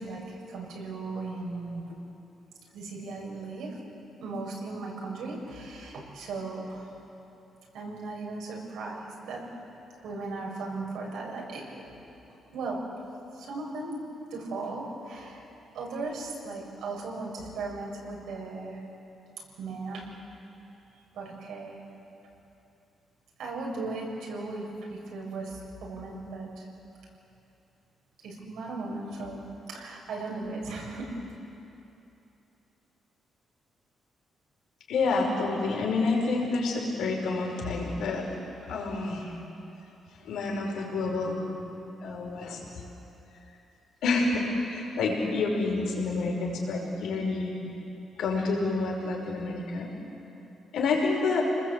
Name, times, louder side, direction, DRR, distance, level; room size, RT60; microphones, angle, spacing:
voice 1, 0.0-1.9 2.7-3.8 4.2-6.9 7.7-9.5 10.0-11.7 12.5-12.8 13.3-14.0 14.3-15.4 15.7-18.8 19.6-20.1 21.1-21.8 23.4-26.7 28.2-29.4 29.7-31.2, right 3 dB, 90° right, -2 dB, 7.0 m, -37 dB
voice 2, 34.9-38.3 38.7-39.3 40.2-41.4 42.0-42.6 44.0-47.5 48.2-50.0 50.7-51.4, left 3 dB, 80° left, -1 dB, 5.3 m, -28 dB
29.0 x 20.0 x 8.3 m, 2.9 s
cardioid pair, 125°, 0 cm